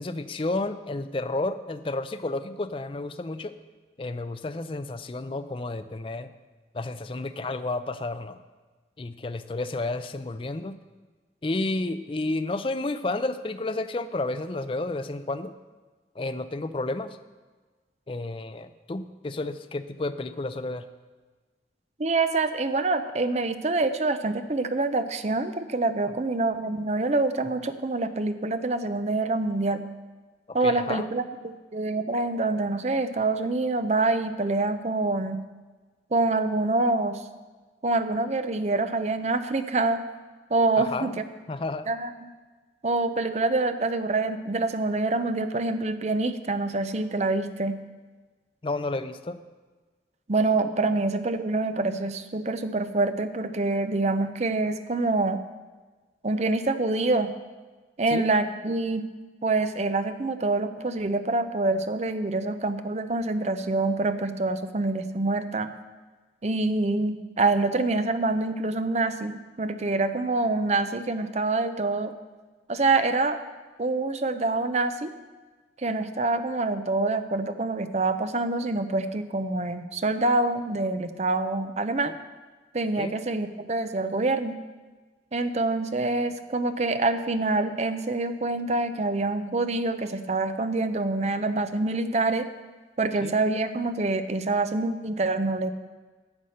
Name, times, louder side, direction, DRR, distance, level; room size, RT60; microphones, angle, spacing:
voice 1, 0.0-3.5 4.0-6.3 6.7-8.4 9.0-10.8 11.4-15.5 16.2-17.2 18.1-20.8 30.6-31.1 40.8-41.2 41.5-41.9 48.6-49.4 58.1-58.2 83.0-83.1 93.2-93.3, left 2 dB, 30° left, 10 dB, 0.5 m, -31 dB
voice 2, 22.0-29.8 30.5-35.4 36.1-37.2 37.8-40.0 40.5-41.2 41.9-42.3 42.8-47.8 50.3-55.4 56.2-57.3 58.0-59.0 59.4-65.7 66.4-72.1 72.7-73.4 73.8-75.1 75.8-82.1 82.7-84.6 85.3-92.5 93.0-95.7, right 2 dB, 40° right, 10 dB, 0.6 m, -26 dB
9.6 x 8.1 x 6.4 m, 1.3 s
head